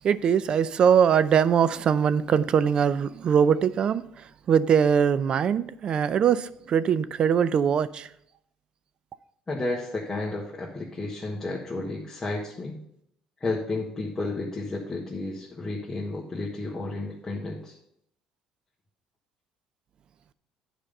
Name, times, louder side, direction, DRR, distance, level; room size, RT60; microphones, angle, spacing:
voice 1, 0.0-8.1, right 7 dB, 45° right, 0.5 m, -22 dB
voice 2, 9.5-12.7 13.4-17.7, left 2 dB, 20° left, 1.5 m, -32 dB
10.0 x 5.1 x 5.3 m
cardioid pair, 105°, 2 cm